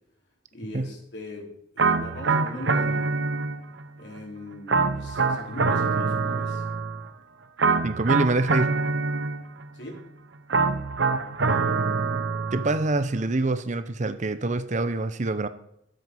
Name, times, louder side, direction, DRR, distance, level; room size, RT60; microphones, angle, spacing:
voice 1, 0.5-1.4 1.7-3.1 4.0-6.6 9.7-10.0, equal, 65° left, -1 dB, 3.8 m, -39 dB
sound 1, 1.8-3.9 4.7-7.1 7.6-9.7 10.5-12.9, right 4 dB, 85° right, 1.0 m, -25 dB
voice 2, 7.8-8.8 12.5-15.5, right 2 dB, 40° right, 12 dB, 0.7 m, -25 dB
12.5 x 7.7 x 5.5 m, 0.76 s
head